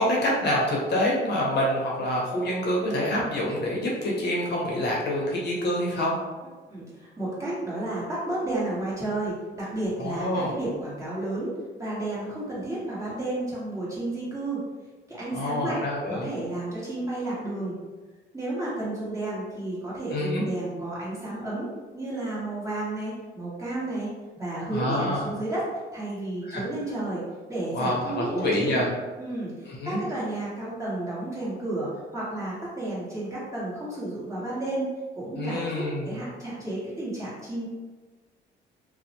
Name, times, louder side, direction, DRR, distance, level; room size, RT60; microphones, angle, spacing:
voice 1, 0.0-6.2 10.0-10.5 15.3-16.3 20.1-20.4 24.7-25.3 26.5-26.6 27.7-28.9 29.7-30.0 35.3-36.1, left 1 dB, 55° left, -3 dB, 0.7 m, -26 dB
voice 2, 6.7-14.6 15.1-15.8 16.1-17.8 18.3-21.7 21.9-28.8 29.2-34.9 35.2-37.7, right 2 dB, 15° right, -9 dB, 1.2 m, -32 dB
2.5 x 2.0 x 2.8 m, 1.3 s
cardioid pair, 90°, 20 cm